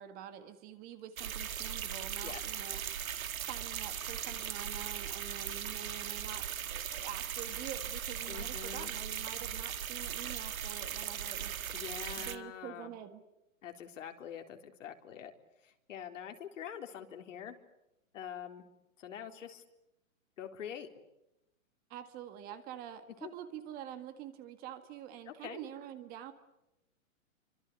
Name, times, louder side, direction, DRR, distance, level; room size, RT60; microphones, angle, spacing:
voice 1, 0.0-2.8 3.4-6.4 6.7-11.6 12.2-13.2 21.9-26.3, right 10 dB, 20° right, 10 dB, 1.8 m, -46 dB
sound 1, 1.2-12.4, right 9 dB, 80° right, 1.9 m, -39 dB
voice 2, 8.3-8.9 11.7-12.9 13.6-15.3 15.6-17.6 18.1-18.7 19.0-19.6 20.4-20.9 23.2-23.3 25.3-25.7, left 9 dB, 65° left, 5 dB, 3.8 m, -45 dB
27.5 x 25.0 x 8.4 m, 0.89 s
hypercardioid pair, 160°, 41 cm